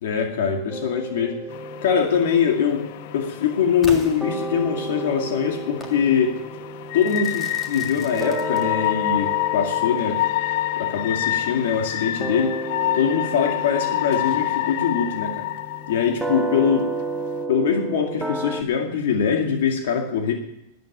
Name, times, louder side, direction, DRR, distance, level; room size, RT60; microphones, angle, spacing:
voice 1, 0.0-1.4 1.8-2.8 3.1-6.4 6.9-10.2 10.7-12.6 12.9-15.4 15.9-16.9 17.5-20.3, left 7 dB, 70° left, 3 dB, 2.2 m, -22 dB
sound 1, 0.7-3.9 4.2-18.6, right 2 dB, 5° right, 0.7 m, -33 dB
sound 2, 1.5-17.4, left 14 dB, 50° left, 0.5 m, -28 dB
Crackle / Fireworks, 3.8-5.0 5.8-6.0 7.0-9.0, left 2 dB, 15° left, 1.8 m, -39 dB
13.0 x 9.3 x 9.4 m, 0.82 s
supercardioid pair, 165°, 0 cm